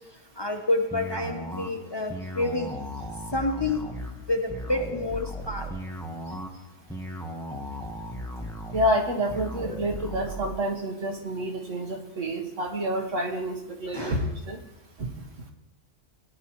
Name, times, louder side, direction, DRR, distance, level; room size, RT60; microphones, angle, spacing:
voice 1, 0.4-2.7 3.3-3.8 4.3-5.7 13.9-14.3, left 2 dB, 25° left, 3 dB, 0.7 m, -28 dB
sound 1, 0.9-10.5, equal, 5° left, 1.1 m, -36 dB
voice 2, 8.7-14.2 14.5-14.6 15.0-15.1, right 1 dB, 80° right, 2 dB, 1.6 m, -28 dB
17.5 x 9.9 x 3.0 m, 0.90 s
omnidirectional pair, 1.3 m